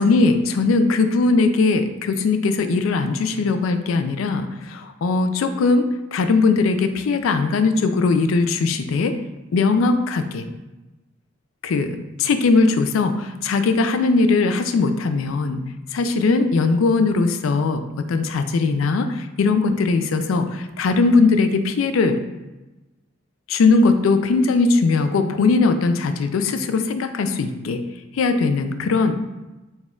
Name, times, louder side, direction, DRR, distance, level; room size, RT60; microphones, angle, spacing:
voice 1, 0.0-9.2 9.5-10.4 11.6-15.6 15.9-17.8 18.1-22.2 23.5-27.8 28.1-29.1, left 3 dB, 85° left, 8 dB, 0.4 m, -19 dB
4.1 x 2.3 x 3.6 m, 1.1 s
head